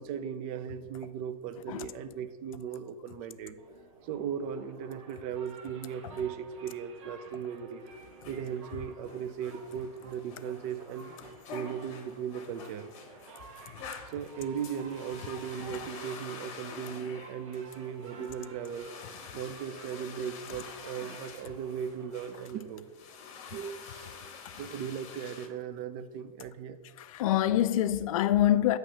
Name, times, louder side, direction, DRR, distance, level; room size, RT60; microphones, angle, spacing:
voice 1, 0.0-3.6 4.0-7.8 8.3-12.9 13.4-13.5 14.1-18.9 19.3-22.9 23.5-24.1 24.5-26.8, right 8 dB, 40° right, 0.5 m, -37 dB
sound 1, 3.6-22.9, right 4 dB, 60° right, 1.0 m, -53 dB
sound 2, 7.8-25.5, left 5 dB, 40° left, 1.1 m, -48 dB
voice 2, 15.3-15.8 23.4-23.5 27.0-28.8, left 12 dB, 70° left, 0.5 m, -27 dB
8.5 x 3.2 x 6.3 m
supercardioid pair, 140°, 18 cm